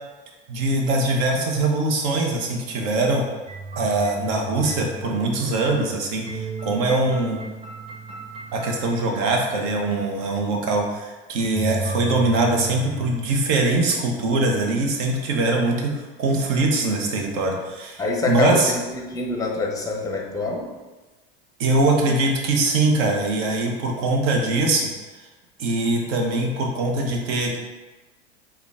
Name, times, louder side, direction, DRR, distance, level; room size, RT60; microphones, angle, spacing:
voice 1, 0.5-3.2 3.8-7.4 8.5-18.7 21.6-24.9 25.6-27.6, right 2 dB, 60° right, 1 dB, 0.8 m, -22 dB
sound 1, 3.5-5.7 6.2-10.6 11.4-13.1, right 3 dB, 20° right, 1.3 m, -35 dB
voice 2, 18.0-20.7, left 3 dB, 10° left, 0 dB, 0.7 m, -25 dB
3.6 x 2.3 x 3.5 m, 1.2 s
hypercardioid pair, 90°, 29 cm